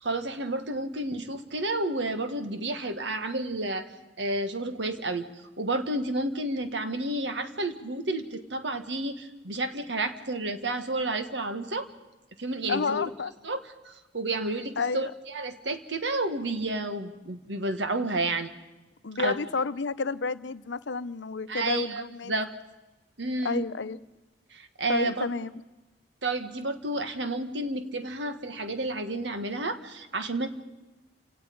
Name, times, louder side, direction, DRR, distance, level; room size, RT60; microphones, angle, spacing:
voice 1, 0.0-3.9 4.2-5.3 5.6-11.9 12.4-13.1 13.4-13.6 13.9-18.5 19.2-19.4 21.5-22.5 23.2-23.6 24.5-25.3 26.2-30.5, right 2 dB, 75° right, 8 dB, 1.7 m, -31 dB
voice 2, 12.7-13.3 14.8-15.1 19.0-22.4 23.4-24.0 24.9-25.5, left 4 dB, 80° left, 14 dB, 0.7 m, -30 dB
28.5 x 17.5 x 5.3 m, 1.1 s
head